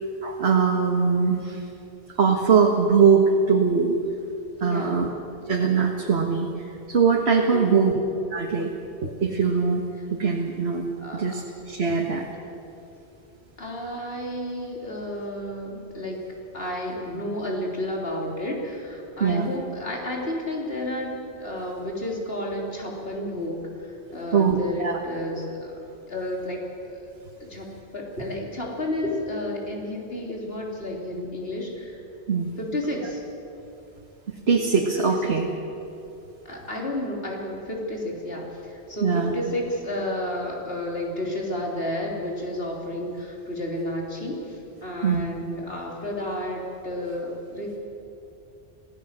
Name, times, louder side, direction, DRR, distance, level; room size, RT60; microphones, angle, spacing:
voice 1, 0.2-1.6 2.2-4.0 4.6-5.1 5.5-6.5 6.9-7.9 8.3-8.7 9.0-9.8 10.1-10.9 11.1-12.3 19.2-19.5 24.3-25.0 32.3-32.5 34.5-35.5 39.0-39.3 45.0-45.2, right 5 dB, 65° right, 0 dB, 1.8 m, -21 dB
voice 2, 4.6-5.1 7.5-7.8 10.0-10.1 11.0-11.3 11.9-12.1 13.6-16.2 16.5-21.1 21.4-25.7 26.0-27.0 27.4-32.0 32.6-33.2 35.1-35.3 36.5-47.8, left 1 dB, 60° left, -1 dB, 3.8 m, -31 dB
26.0 x 16.5 x 7.5 m, 2.8 s
omnidirectional pair, 1.2 m